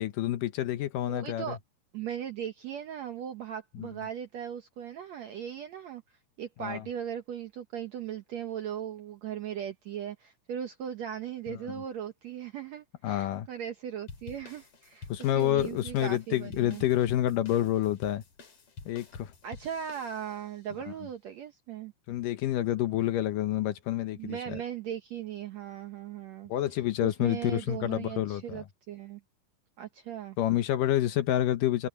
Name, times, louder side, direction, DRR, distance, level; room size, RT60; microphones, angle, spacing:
voice 1, 0.0-1.6 3.8-3.9 6.6-6.8 11.5-11.6 13.0-13.5 15.1-18.2 18.9-19.3 22.1-24.6 26.5-28.6 30.4-31.9, left 13 dB, 70° left, 2.4 m, -28 dB
voice 2, 1.1-1.6 1.9-6.0 6.4-15.1 15.4-16.8 19.4-21.9 24.1-26.5 27.0-29.2 29.8-30.4, right 9 dB, 70° right, 1.7 m, -38 dB
sound 1, 14.1-20.6, left 4 dB, 40° left, 3.8 m, -48 dB
omnidirectional pair, 4.3 m